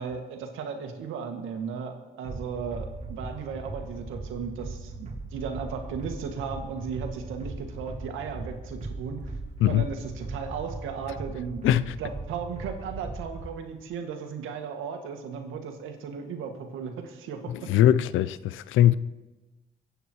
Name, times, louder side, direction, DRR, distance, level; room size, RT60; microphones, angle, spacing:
voice 1, 0.0-9.2 9.7-11.6 12.0-17.4, right 6 dB, 90° right, 2.1 m, -36 dB
sound 1, 2.2-13.5, right 2 dB, 35° right, 3.2 m, -39 dB
voice 2, 11.6-11.9 17.5-18.9, left 11 dB, 85° left, 0.6 m, -21 dB
22.5 x 9.0 x 4.7 m
cardioid pair, 90°, 20 cm